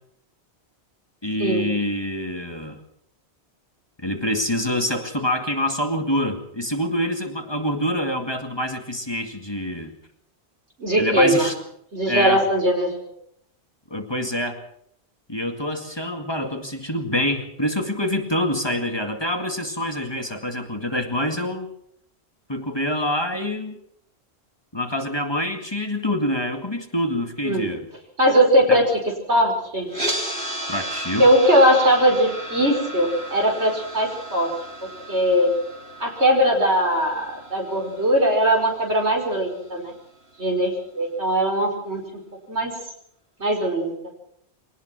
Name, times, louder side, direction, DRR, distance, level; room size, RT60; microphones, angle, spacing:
voice 1, 1.2-2.8 4.0-9.9 11.0-11.5 12.1-12.4 13.9-14.6 15.3-21.7 22.5-23.8 24.7-27.9 28.7-28.8 30.7-31.3, left 1 dB, 25° left, 5 dB, 2.1 m, -26 dB
voice 2, 10.8-11.5 11.9-13.1 27.4-27.7 28.2-28.9 29.3-29.9 31.2-34.5 34.8-35.5 36.0-39.9 40.4-42.0 42.5-42.7 43.4-43.9, equal, 80° right, 2 dB, 5.6 m, -20 dB
sound 1, 29.9-40.0, right 1 dB, 65° right, 3.9 m, -34 dB
23.0 x 18.5 x 6.1 m, 0.70 s
omnidirectional pair, 1.1 m